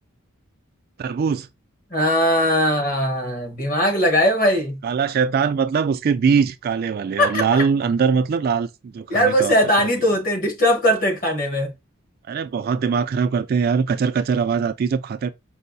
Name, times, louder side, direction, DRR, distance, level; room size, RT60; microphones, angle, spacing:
voice 1, 1.0-1.5 4.8-9.9 12.3-15.3, right 6 dB, 50° right, 0.3 m, -22 dB
voice 2, 1.9-4.8 7.2-7.6 9.1-11.7, equal, 45° left, 1.3 m, -20 dB
5.4 x 2.1 x 2.6 m
head